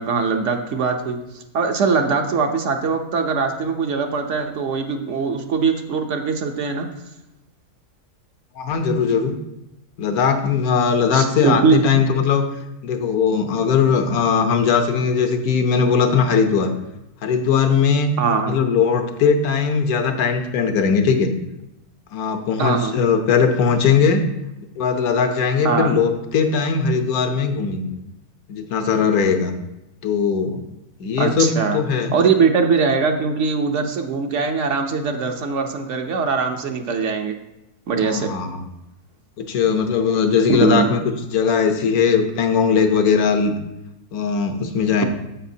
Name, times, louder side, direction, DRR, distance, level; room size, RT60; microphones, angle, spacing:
voice 1, 0.0-6.9 11.1-12.0 18.2-18.6 22.6-22.9 25.6-25.9 31.2-31.8 32.1-37.4 37.9-38.3 40.5-40.9, right 5 dB, 60° right, 5 dB, 0.9 m, -21 dB
voice 2, 8.6-9.3 10.0-12.4 12.8-16.7 17.2-18.1 18.5-21.3 22.1-24.2 24.8-28.0 28.5-29.5 30.0-30.6 31.0-32.2 38.0-38.7 39.4-41.0 41.3-43.5 44.1-45.0, left 6 dB, 75° left, 6 dB, 1.3 m, -19 dB
10.0 x 7.7 x 2.7 m, 0.89 s
omnidirectional pair, 1.6 m